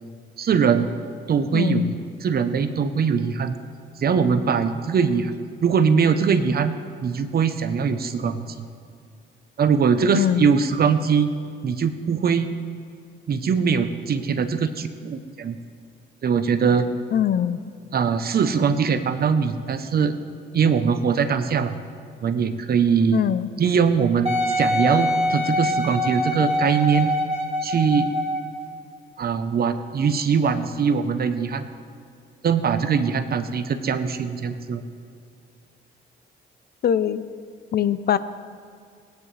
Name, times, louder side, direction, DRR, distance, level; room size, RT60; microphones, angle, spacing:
voice 1, 0.4-0.9 1.3-1.8 2.2-3.6 4.0-5.3 5.6-6.7 7.0-8.7 9.6-11.3 11.6-12.5 13.3-15.6 16.2-16.9 17.9-20.1 20.5-21.8 22.2-23.2 23.6-27.1 27.6-28.1 29.2-31.7 32.4-34.8, right 6 dB, 50° right, 10 dB, 0.9 m, -21 dB
voice 2, 1.5-2.0 10.1-10.5 17.1-17.6 23.1-23.5 36.8-37.2 37.7-38.2, left 9 dB, 50° left, 14 dB, 0.6 m, -22 dB
Wind instrument woodwind instrument, 24.3-28.6 29.2-29.3, left 1 dB, 30° right, 2.1 m, -24 dB
19.5 x 9.5 x 3.4 m, 2.4 s
cardioid pair, 90°, 20 cm